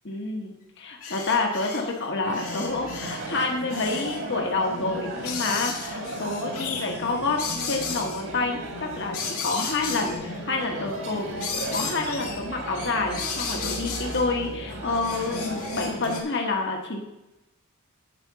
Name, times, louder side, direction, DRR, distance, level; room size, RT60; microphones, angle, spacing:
voice 1, 0.0-7.4 7.6-11.3 11.7-17.0, left 3 dB, 55° left, 2 dB, 1.2 m, -28 dB
sound 1, 1.0-2.0 2.3-4.2 5.2-8.2 9.1-10.2 11.4-12.5 12.8-14.3 14.9-16.2, left 5 dB, 80° left, 2.0 m, -34 dB
sound 2, 2.2-16.2, right 1 dB, 60° right, 1.9 m, -35 dB
8.9 x 5.0 x 6.9 m, 0.94 s
head